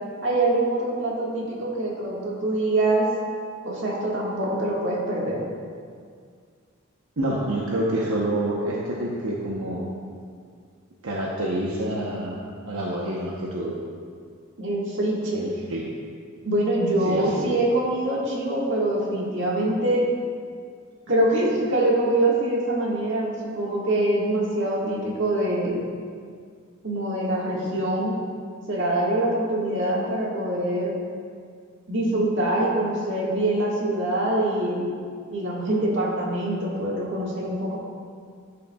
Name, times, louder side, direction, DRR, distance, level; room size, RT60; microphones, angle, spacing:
voice 1, 0.2-3.1 3.6-5.4 14.6-15.4 16.4-20.1 21.1-25.8 26.8-28.1 28.7-30.9 31.9-34.9 35.3-37.8, right 1 dB, 60° right, -4 dB, 1.7 m, -24 dB
voice 2, 7.2-9.9 11.0-12.4 12.7-13.8 15.3-15.8 17.0-17.5, right 1 dB, 85° right, -4 dB, 0.9 m, -27 dB
12.5 x 6.7 x 2.3 m, 2.1 s
head